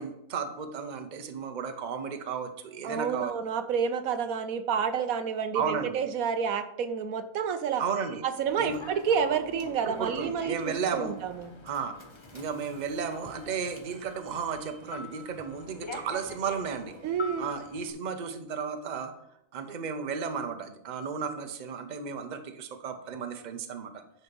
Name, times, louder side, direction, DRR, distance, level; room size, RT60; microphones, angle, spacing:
voice 1, 0.0-3.3 5.5-6.0 7.8-8.2 8.6-8.8 9.8-11.2 11.6-12.0 12.3-16.9 17.4-19.1 19.5-24.0, right 6 dB, 40° right, 7 dB, 0.8 m, -34 dB
voice 2, 2.8-7.8 8.2-11.5 17.0-17.5, right 7 dB, 75° right, 10 dB, 1.1 m, -29 dB
Human voice / Subway metro underground, 8.5-17.9, left 2 dB, 20° left, 0.9 m, -45 dB
9.9 x 4.2 x 5.3 m, 0.77 s
omnidirectional pair, 1.5 m